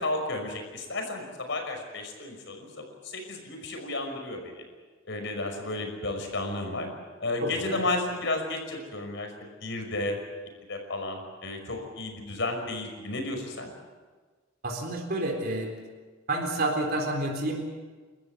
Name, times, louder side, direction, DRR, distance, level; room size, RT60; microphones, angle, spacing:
voice 1, 0.0-4.6 5.0-6.9 7.2-9.3 9.6-10.2 10.7-13.7, left 2 dB, 65° left, 3 dB, 5.6 m, -32 dB
voice 2, 7.4-7.8 14.6-15.7 16.3-17.6, right 2 dB, 50° right, 1 dB, 3.9 m, -29 dB
30.0 x 14.0 x 8.4 m, 1.4 s
head